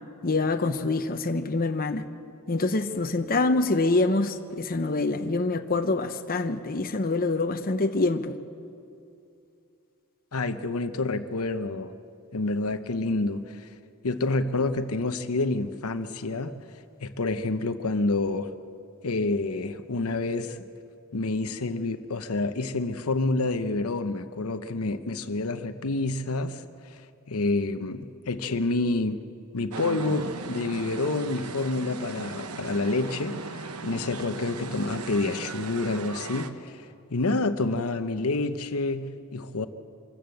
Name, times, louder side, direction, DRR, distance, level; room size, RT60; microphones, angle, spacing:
voice 1, 0.2-2.0 2.5-8.4, left 3 dB, 40° left, 7 dB, 0.8 m, -25 dB
voice 2, 10.3-11.9 12.3-13.7 14.0-16.5 17.0-18.5 19.0-20.6 21.1-29.3 29.5-36.9 37.1-39.7, left 2 dB, 70° left, 10 dB, 0.8 m, -28 dB
sound 1, 29.7-36.5, right 4 dB, 85° right, 1.1 m, -38 dB
26.0 x 14.0 x 7.9 m, 2.6 s
head